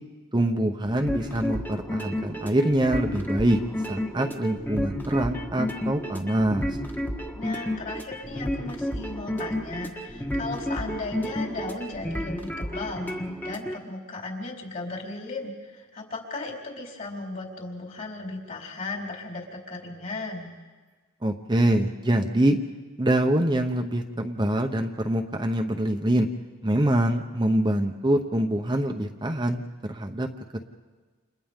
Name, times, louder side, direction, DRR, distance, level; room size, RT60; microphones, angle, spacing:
voice 1, 0.3-3.6 3.9-6.7 21.2-22.6 23.0-26.3 26.6-29.6 29.9-30.6, right 1 dB, 20° right, 3 dB, 0.9 m, -24 dB
sound 1, 0.8-13.8, equal, 10° left, 1.5 m, -31 dB
voice 2, 7.3-13.0 13.4-20.5, left 2 dB, 40° left, -3 dB, 4.4 m, -36 dB
30.0 x 28.5 x 3.7 m, 1.4 s
head